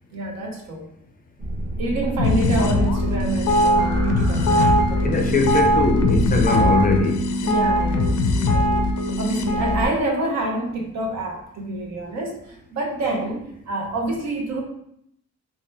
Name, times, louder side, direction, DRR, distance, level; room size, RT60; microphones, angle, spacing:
voice 1, 0.1-0.9 1.8-5.1 7.4-8.1 8.5-8.8 9.2-14.6, right 1 dB, 60° right, 1 dB, 0.9 m, -27 dB
sound 1, 1.4-6.5, right 1 dB, 35° right, 1.0 m, -29 dB
sound 2, 2.2-9.9, left 1 dB, 75° left, 0.6 m, -20 dB
voice 2, 5.0-7.2, left 3 dB, 30° left, 3 dB, 0.5 m, -21 dB
3.3 x 2.8 x 3.2 m, 0.75 s
cardioid pair, 90°, 30 cm